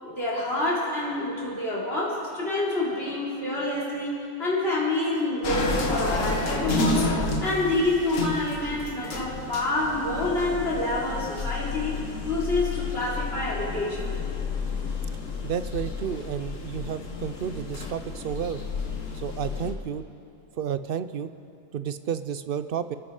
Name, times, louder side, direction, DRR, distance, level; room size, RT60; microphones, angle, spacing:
voice 1, 0.0-14.0, left 2 dB, 50° left, -6 dB, 4.1 m, -27 dB
sound 1, 5.4-19.7, left 3 dB, 90° left, 1.7 m, -31 dB
voice 2, 15.4-18.6 19.1-20.1 20.6-21.3 21.7-23.0, right 8 dB, 55° right, 12 dB, 0.7 m, -31 dB
28.5 x 9.6 x 4.9 m, 2.6 s
omnidirectional pair, 1.3 m